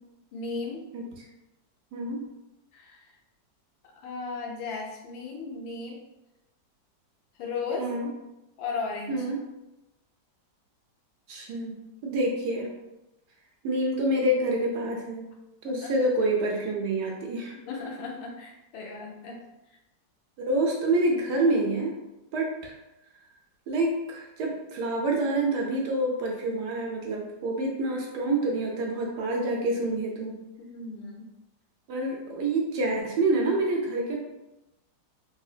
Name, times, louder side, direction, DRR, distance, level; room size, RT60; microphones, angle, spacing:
voice 1, 0.3-0.8 2.7-3.0 4.0-6.0 7.4-7.9 8.6-9.3 15.6-16.0 17.7-19.4 30.6-31.2, left 4 dB, 90° left, 0 dB, 1.4 m, -35 dB
voice 2, 1.9-2.3 7.8-8.1 9.1-9.4 11.3-11.8 12.0-12.7 13.6-15.3 15.6-17.6 20.4-21.9 22.3-22.7 23.7-30.4 31.9-34.2, right 2 dB, 70° right, -1 dB, 1.1 m, -27 dB
3.7 x 2.7 x 2.4 m, 0.95 s
omnidirectional pair, 2.0 m